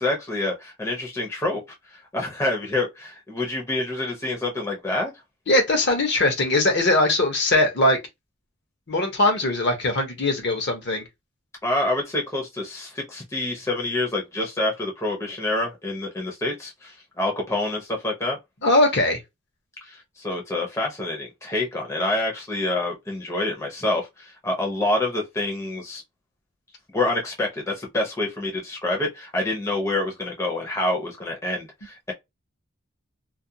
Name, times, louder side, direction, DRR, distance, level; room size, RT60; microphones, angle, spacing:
voice 1, 0.0-1.6 1.9-5.1 11.6-18.4 19.8-26.0 26.9-32.1, left 2 dB, 15° left, 0.6 m, -27 dB
voice 2, 5.5-8.0 8.9-11.0 18.6-19.2, left 2 dB, 50° left, 0.8 m, -20 dB
2.3 x 2.2 x 2.7 m
head